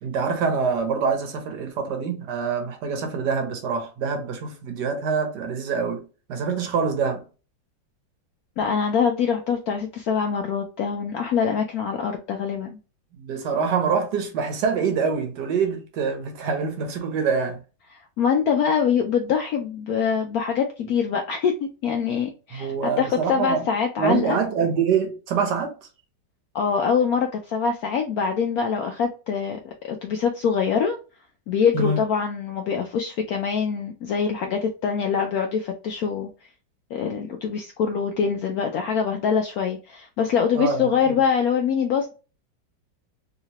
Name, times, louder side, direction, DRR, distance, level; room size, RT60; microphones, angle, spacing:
voice 1, 0.0-7.2 13.1-17.6 22.5-23.6 24.0-25.7 31.7-32.0 40.5-41.1, right 5 dB, 65° right, 1.3 m, -25 dB
voice 2, 8.6-12.8 18.2-24.4 26.5-31.0 31.5-36.3 36.9-42.1, left 6 dB, 75° left, 0.8 m, -24 dB
3.2 x 2.9 x 2.8 m
omnidirectional pair, 2.0 m